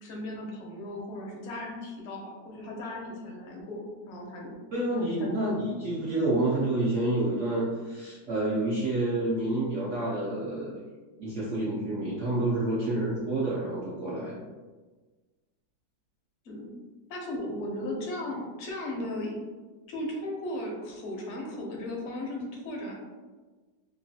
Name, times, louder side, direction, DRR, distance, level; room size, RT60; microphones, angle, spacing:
voice 1, 0.0-4.5 5.2-5.3 16.4-16.8 17.1-19.4 19.9-22.9, left 1 dB, 60° left, -2 dB, 0.7 m, -36 dB
voice 2, 4.7-10.8 11.2-14.4, right 2 dB, 65° right, -8 dB, 0.7 m, -28 dB
3.0 x 2.3 x 2.7 m, 1.3 s
omnidirectional pair, 1.9 m